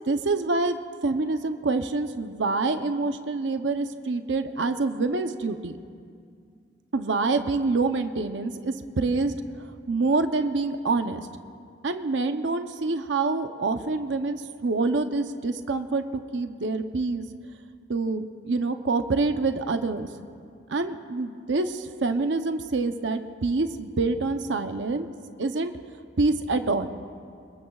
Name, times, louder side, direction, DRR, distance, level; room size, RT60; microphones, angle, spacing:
voice 1, 0.1-5.8 6.9-9.3 9.9-11.3 11.8-16.0 16.3-17.3 17.9-20.1 20.7-25.1 25.4-25.7 26.2-27.0, right 3 dB, 75° right, 7 dB, 0.7 m, -26 dB
26.5 x 21.5 x 2.4 m, 2.3 s
head